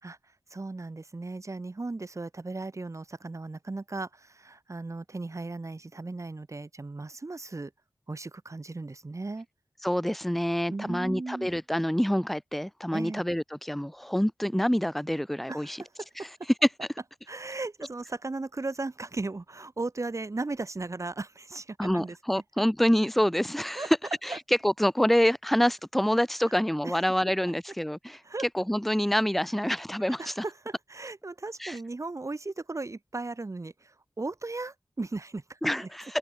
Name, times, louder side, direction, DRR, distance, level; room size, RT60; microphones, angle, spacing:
voice 1, 0.5-7.7 8.1-9.5 10.7-11.5 12.9-13.2 15.5-15.9 17.3-22.4 23.8-23.9 24.3-24.4 26.8-27.0 28.2-28.5 30.2-35.9, right 3 dB, 45° right, 4.5 m, -36 dB
voice 2, 9.8-15.8 21.8-24.0 24.2-24.4 24.6-28.2 28.5-30.4 31.6-31.8 35.6-36.2, equal, ahead, 0.7 m, -27 dB
open air
cardioid pair, 55°, 7 cm